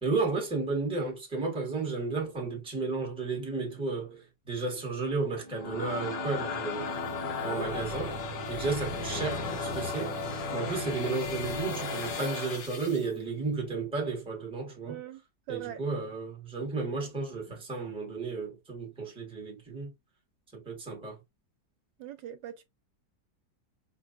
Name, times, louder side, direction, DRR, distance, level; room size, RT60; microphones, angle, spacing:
voice 1, 0.0-7.0 7.4-8.2 8.5-10.2 10.5-15.0 15.5-19.9 20.5-21.2, right 4 dB, 5° right, 1.0 m, -33 dB
sound 1, 5.3-13.1, left 3 dB, 75° left, 1.5 m, -35 dB
voice 2, 14.8-15.2 15.5-15.8 22.0-22.6, right 12 dB, 80° right, 1.2 m, -40 dB
4.6 x 2.2 x 2.5 m
omnidirectional pair, 2.0 m